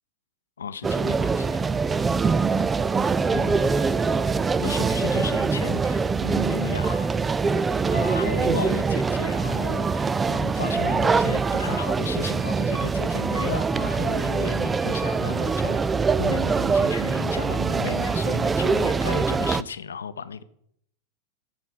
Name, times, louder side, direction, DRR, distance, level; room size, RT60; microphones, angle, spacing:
voice 1, 0.6-1.7 3.3-3.9 4.6-7.1 7.9-15.9 16.2-20.4, left 6 dB, 70° left, 14 dB, 0.7 m, -34 dB
sound 1, 0.8-19.6, right 4 dB, 15° right, 0.4 m, -24 dB
15.0 x 8.4 x 5.5 m, 0.72 s
figure-of-eight pair, 90°, 0 cm